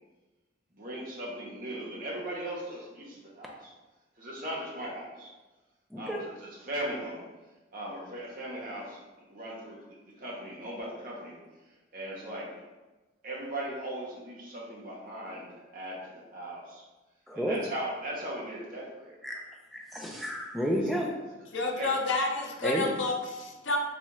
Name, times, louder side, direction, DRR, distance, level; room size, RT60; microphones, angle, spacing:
voice 1, 0.7-3.7 4.2-5.3 6.0-7.3 7.7-11.4 11.9-12.5 13.2-16.8 17.3-19.2 21.8-21.9, right 1 dB, 45° right, -4 dB, 0.8 m, -38 dB
voice 2, 17.3-17.6 19.2-19.4 19.7-21.1 22.6-22.8, equal, ahead, -2 dB, 0.4 m, -31 dB
voice 3, 21.5-23.8, left 3 dB, 80° left, 1 dB, 0.6 m, -30 dB
4.1 x 2.4 x 3.0 m, 1.2 s
head